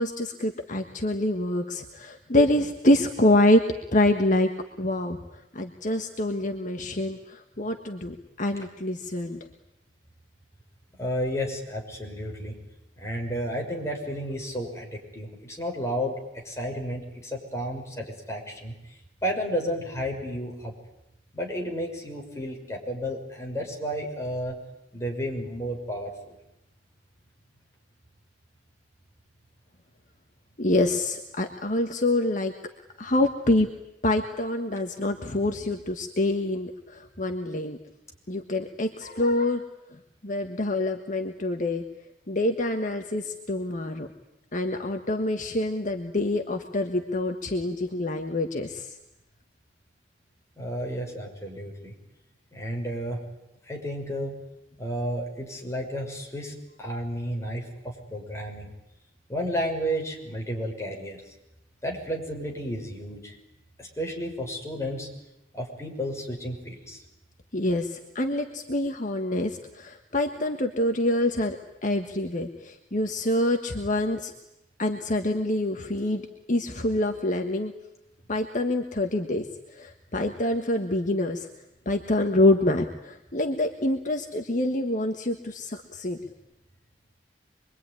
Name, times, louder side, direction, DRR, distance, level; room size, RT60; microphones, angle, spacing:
voice 1, 0.0-3.6 3.9-4.5 4.8-5.2 5.5-9.5 30.6-32.5 33.0-33.7 34.0-37.8 38.3-39.6 40.2-41.8 42.3-44.1 44.5-48.9 67.5-74.3 74.8-76.2 76.5-77.7 78.3-81.5 81.8-86.2, left 1 dB, 45° left, 5 dB, 1.5 m, -26 dB
voice 2, 11.0-12.5 13.0-20.7 21.3-24.5 24.9-26.1 50.6-51.9 52.5-53.2 53.6-54.4 54.8-58.7 59.3-61.2 61.8-63.3 63.8-65.1 65.5-67.0, equal, 15° left, 0 dB, 6.3 m, -32 dB
26.0 x 23.0 x 9.9 m, 0.88 s
head